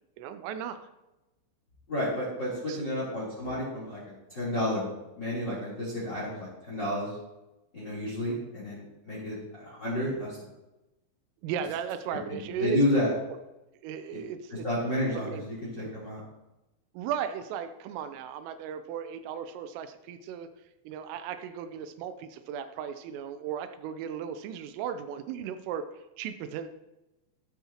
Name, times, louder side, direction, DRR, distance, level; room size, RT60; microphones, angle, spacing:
voice 1, 0.2-0.8 2.7-2.9 8.3-8.5 11.4-12.8 13.8-14.7 15.3-15.4 16.9-20.5 20.9-26.7, right 8 dB, 90° right, 9 dB, 3.3 m, -36 dB
voice 2, 1.9-4.0 4.3-7.1 7.7-10.4 12.6-13.1 14.1-14.2 14.6-15.4 15.8-16.2, left 1 dB, 25° left, -6 dB, 3.4 m, -30 dB
13.5 x 12.5 x 3.0 m, 0.97 s
omnidirectional pair, 5.7 m